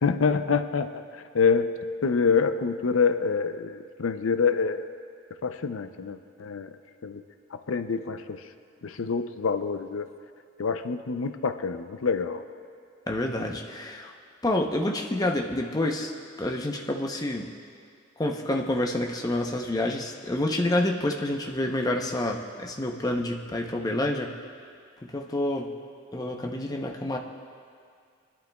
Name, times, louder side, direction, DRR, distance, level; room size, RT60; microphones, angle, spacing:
voice 1, 0.0-1.7 2.0-4.9 5.4-6.7 7.0-7.2 7.5-8.4 8.8-10.1 10.6-12.4, left 5 dB, 90° left, 10 dB, 0.5 m, -26 dB
voice 2, 13.1-14.1 14.4-16.1 16.4-17.5 18.2-24.3 25.0-25.7 26.1-27.2, left 1 dB, 20° left, 1 dB, 0.7 m, -28 dB
22.0 x 11.5 x 2.3 m, 2.2 s
head